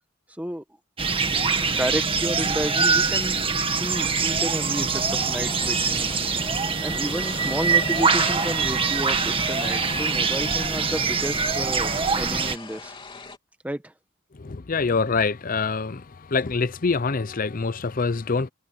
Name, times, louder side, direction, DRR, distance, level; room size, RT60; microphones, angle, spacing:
sound 1, 1.0-12.6, right 5 dB, 25° right, 1.7 m, -24 dB
voice 1, 1.3-3.3 3.7-6.1 6.8-12.9 13.6-13.8, equal, 5° right, 1.4 m, -31 dB
sound 2, 4.9-13.4, left 4 dB, 25° left, 3.5 m, -40 dB
voice 2, 14.4-16.0 16.3-18.5, left 4 dB, 45° left, 0.6 m, -25 dB
head